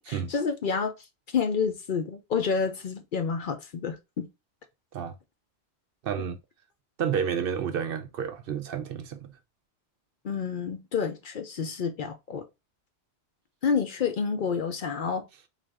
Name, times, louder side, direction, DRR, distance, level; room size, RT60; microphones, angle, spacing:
voice 1, 0.1-0.9 1.3-4.3 10.2-12.4 13.6-15.3, left 6 dB, 55° left, 0.6 m, -29 dB
voice 2, 6.0-6.4 7.0-9.3, right 7 dB, 65° right, 0.7 m, -30 dB
3.9 x 2.5 x 3.2 m
omnidirectional pair, 1.1 m